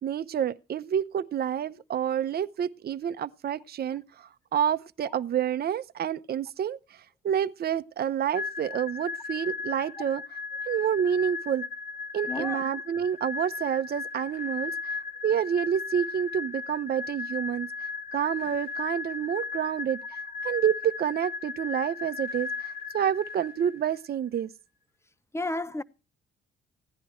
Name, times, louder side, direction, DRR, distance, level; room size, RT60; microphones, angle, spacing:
voice 1, 0.0-6.8 7.2-10.2 10.7-11.7 12.1-15.0 15.2-17.7 18.1-24.5, right 9 dB, 50° right, 0.8 m, -28 dB
sound 1, 8.3-23.9, left 5 dB, 50° left, 2.1 m, -36 dB
voice 2, 12.3-12.6 25.3-25.8, left 2 dB, 15° left, 0.9 m, -32 dB
16.0 x 10.5 x 4.4 m
cardioid pair, 90°, 20 cm